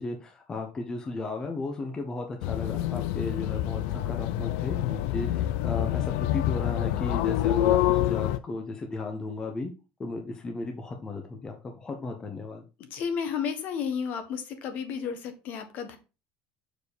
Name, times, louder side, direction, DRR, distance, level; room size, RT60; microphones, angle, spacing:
voice 1, 0.0-9.7 10.0-12.6, left 3 dB, 15° left, 3 dB, 0.9 m, -35 dB
sound 1, 2.4-8.4, left 13 dB, 70° left, 0.5 m, -27 dB
voice 2, 12.9-16.0, left 7 dB, 45° left, 8 dB, 1.5 m, -32 dB
6.8 x 4.8 x 4.2 m, 0.30 s
cardioid pair, 160°, 4 cm